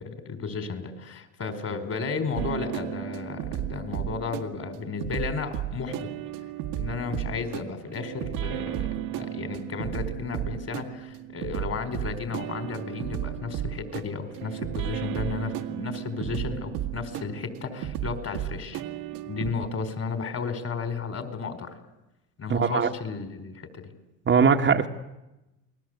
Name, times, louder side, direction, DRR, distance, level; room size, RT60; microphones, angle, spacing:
voice 1, 0.0-6.1 6.7-18.8 19.3-21.7 22.4-23.8, left 4 dB, 40° left, 9 dB, 4.9 m, -33 dB
sound 1, 2.3-19.5, right 12 dB, 65° right, 2.0 m, -34 dB
voice 2, 22.5-22.9 24.3-24.9, right 6 dB, 30° right, 3 dB, 1.8 m, -20 dB
29.0 x 20.5 x 8.2 m, 0.96 s
hypercardioid pair, 85°, 38 cm